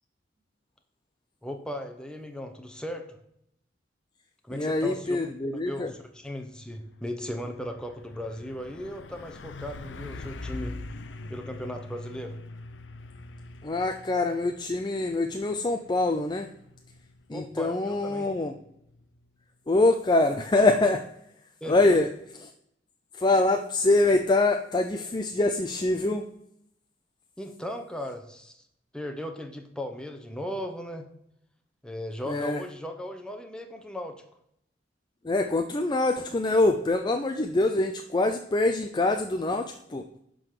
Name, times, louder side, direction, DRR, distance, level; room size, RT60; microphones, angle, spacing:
voice 1, 1.4-3.2 4.4-5.2 5.5-10.8 11.3-12.4 17.3-18.3 21.6-22.0 27.4-28.6 28.9-31.0 31.8-34.2, left 1 dB, 5° left, 5 dB, 0.8 m, -37 dB
voice 2, 4.5-5.9 13.6-16.5 17.3-18.5 19.7-21.0 21.7-22.1 22.3-22.5 23.2-26.2 32.3-32.6 35.2-40.0, left 2 dB, 25° left, 6 dB, 0.5 m, -24 dB
Truck, 6.1-6.4 6.7-19.3, left 2 dB, 80° left, 0.6 m, -44 dB
10.5 x 3.9 x 6.6 m, 0.74 s
head